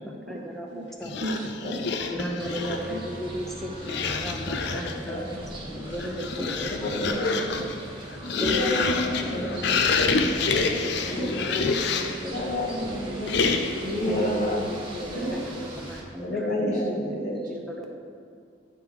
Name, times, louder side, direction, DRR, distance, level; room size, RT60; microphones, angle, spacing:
voice 1, 0.0-0.7 1.0-1.1 2.1-7.2 7.6-7.7 8.4-8.9 9.2-12.7 13.1-13.2 14.1-17.0 17.5-17.9, equal, ahead, -1 dB, 0.8 m, -35 dB
sound 1, 1.0-2.9 3.8-5.1 5.8-12.3 13.3-13.9, left 4 dB, 65° left, 0.5 m, -27 dB
voice 2, 1.2-2.1 2.6-3.2 10.5-10.9 11.1-11.3 15.1-15.3 15.7-15.8 16.6-17.6, right 1 dB, 50° right, 0 dB, 1.1 m, -36 dB
sound 2, 2.4-16.0, right 1 dB, 30° right, 1.2 m, -41 dB
voice 3, 6.7-7.6 8.3-9.7 12.3-13.3 13.8-14.7 14.9-15.4 16.2-16.9 17.2-17.4, left 1 dB, 40° left, -2 dB, 1.2 m, -29 dB
10.0 x 3.6 x 4.8 m, 2.3 s
head